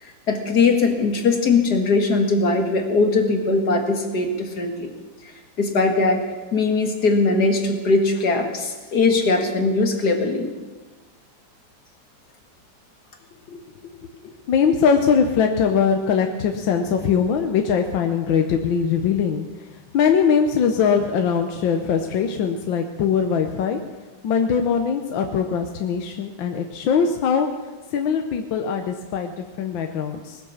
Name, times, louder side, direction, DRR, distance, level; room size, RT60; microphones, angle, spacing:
voice 1, 0.0-4.9 5.6-6.2 6.5-10.5, left 3 dB, 55° left, 3 dB, 2.3 m, -20 dB
voice 2, 14.5-19.4 19.9-23.8 24.2-27.5 27.9-30.4, left 6 dB, 75° left, 5 dB, 1.7 m, -21 dB
20.0 x 9.8 x 7.2 m, 1.3 s
omnidirectional pair, 2.1 m